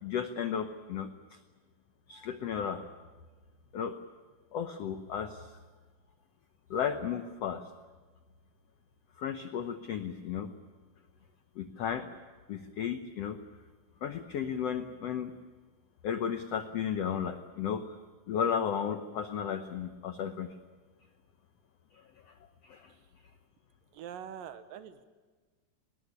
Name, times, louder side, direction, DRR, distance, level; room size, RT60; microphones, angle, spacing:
voice 1, 0.0-1.1 2.1-2.8 3.7-3.9 4.5-5.5 6.7-7.7 9.2-10.5 11.6-12.1 12.5-13.4 14.0-15.3 16.0-18.0 18.3-20.5 22.6-22.9, left 8 dB, 80° left, 8 dB, 1.4 m, -34 dB
voice 2, 23.9-25.1, right 9 dB, 75° right, 10 dB, 2.6 m, -44 dB
20.0 x 19.5 x 9.9 m, 1.4 s
omnidirectional pair, 4.2 m